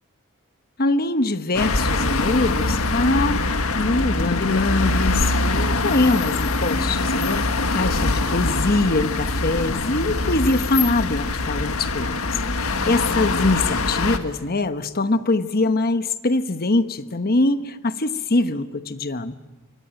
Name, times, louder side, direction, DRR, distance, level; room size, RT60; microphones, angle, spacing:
voice 1, 0.8-3.5 3.7-19.4, left 2 dB, 45° left, 11 dB, 1.2 m, -23 dB
sound 1, 1.5-14.2, left 2 dB, 90° left, 1.8 m, -23 dB
25.0 x 22.5 x 9.1 m, 1.1 s
head